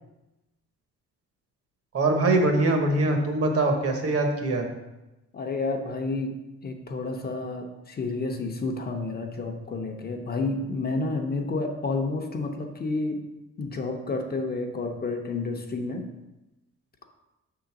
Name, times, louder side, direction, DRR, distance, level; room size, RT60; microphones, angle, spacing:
voice 1, 1.9-4.7, right 2 dB, 50° right, 3 dB, 1.1 m, -23 dB
voice 2, 5.3-6.4 6.6-13.2 13.6-16.1, left 3 dB, 30° left, 3 dB, 0.7 m, -30 dB
7.1 x 3.9 x 5.8 m, 0.99 s
wide cardioid pair, 165°, 30 cm